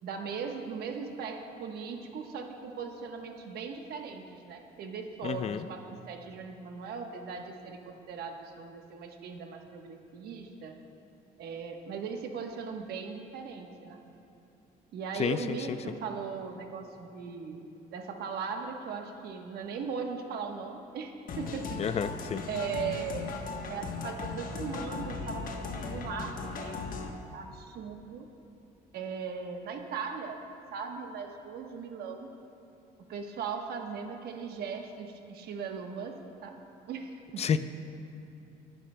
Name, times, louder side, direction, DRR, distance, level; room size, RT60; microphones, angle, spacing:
voice 1, 0.0-10.8 11.4-14.0 14.9-21.8 22.5-23.3 23.7-28.3 28.9-30.4 30.7-32.3 33.1-36.6 36.9-37.4, right 5 dB, 70° right, 4 dB, 1.2 m, -39 dB
voice 2, 5.2-5.6 15.2-15.6 21.8-22.4 37.4-37.6, left 7 dB, 40° left, 11 dB, 0.5 m, -29 dB
sound 1, 21.3-27.1, left 4 dB, 55° left, 1.1 m, -37 dB
24.5 x 11.5 x 2.2 m, 2.8 s
cardioid pair, 110°, 17 cm